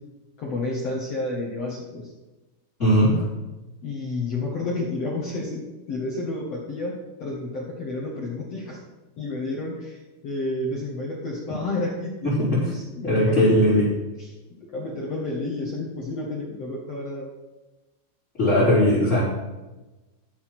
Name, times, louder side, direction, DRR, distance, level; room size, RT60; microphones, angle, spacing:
voice 1, 0.4-2.1 3.8-8.8 9.2-12.3 12.6-13.4 14.2-14.3 14.6-17.3, left 2 dB, 70° left, -3 dB, 1.5 m, -31 dB
voice 2, 2.8-3.2 12.2-12.7 13.0-13.9 18.4-19.2, equal, 15° left, -12 dB, 4.1 m, -19 dB
13.5 x 7.0 x 6.0 m, 1.1 s
omnidirectional pair, 5.8 m